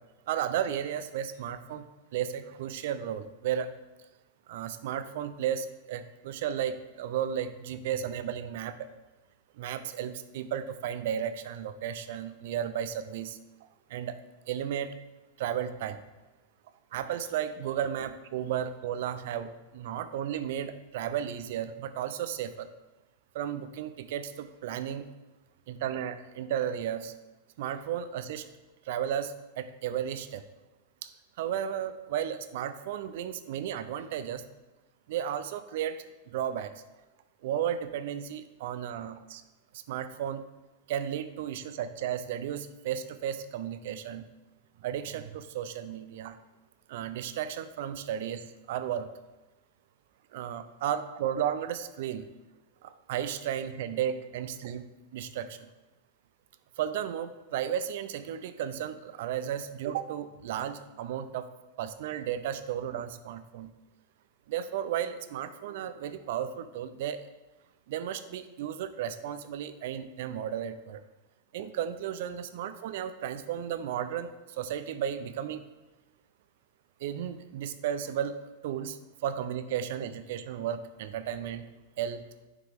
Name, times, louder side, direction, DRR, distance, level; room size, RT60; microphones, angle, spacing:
voice 1, 0.3-1.9 2.1-3.7 4.5-8.7 9.6-13.4 13.9-14.1 14.5-14.9 15.4-16.0 16.9-22.7 23.3-25.1 25.7-27.1 27.6-28.5 28.9-30.4 31.0-31.1 31.4-34.4 35.1-36.0 36.3-36.7 37.4-39.4 39.7-40.4 40.9-44.3 44.8-46.4 46.9-49.1 50.3-52.3 52.8-54.9 55.1-55.6 56.8-61.5 61.8-63.7 64.5-67.3 67.9-71.0 71.5-75.6 77.0-81.7 82.0-82.2, right 9 dB, 65° right, 12 dB, 0.5 m, -34 dB
6.5 x 5.0 x 3.4 m, 1.1 s
supercardioid pair, 130°, 0 cm